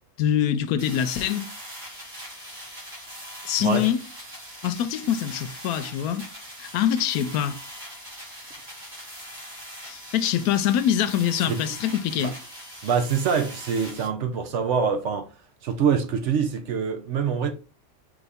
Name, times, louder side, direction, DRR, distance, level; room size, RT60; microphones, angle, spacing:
voice 1, 0.2-1.5 3.5-4.0 4.6-6.3 6.6-7.6 9.9-12.3, left 10 dB, 85° left, 1.1 m, -24 dB
sound 1, 0.8-14.1, equal, 30° right, 1.7 m, -41 dB
voice 2, 12.8-15.3 15.6-17.5, right 6 dB, 65° right, 0.9 m, -25 dB
4.0 x 3.3 x 3.5 m
omnidirectional pair, 1.5 m